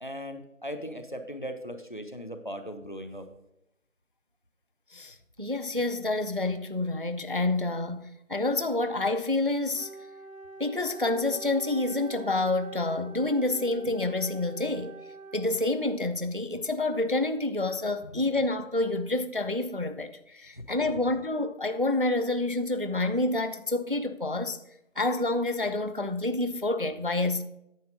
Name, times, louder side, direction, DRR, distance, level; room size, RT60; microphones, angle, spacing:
voice 1, 0.0-3.3 18.0-18.2 20.9-21.0, equal, 40° left, 0.8 m, -38 dB
voice 2, 4.9-9.9 10.6-14.9 15.3-24.6 25.0-27.4, left 2 dB, 45° right, 0.4 m, -28 dB
Wind instrument woodwind instrument, 9.7-16.1, right 3 dB, 75° right, 1.5 m, -45 dB
9.3 x 6.8 x 5.1 m
figure-of-eight pair, 175°, 39 cm